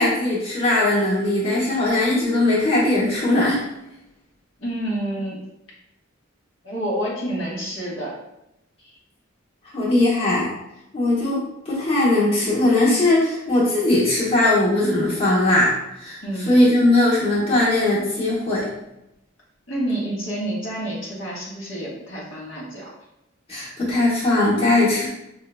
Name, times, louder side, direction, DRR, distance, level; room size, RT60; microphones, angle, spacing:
voice 1, 0.0-3.7 9.7-10.5 10.9-16.2 16.5-18.7 23.5-25.1, left 2 dB, 30° left, -9 dB, 1.1 m, -19 dB
voice 2, 4.6-5.5 6.6-8.1 16.2-16.6 19.7-22.8, right 1 dB, 65° left, -6 dB, 1.2 m, -28 dB
5.0 x 2.8 x 2.2 m, 0.85 s
head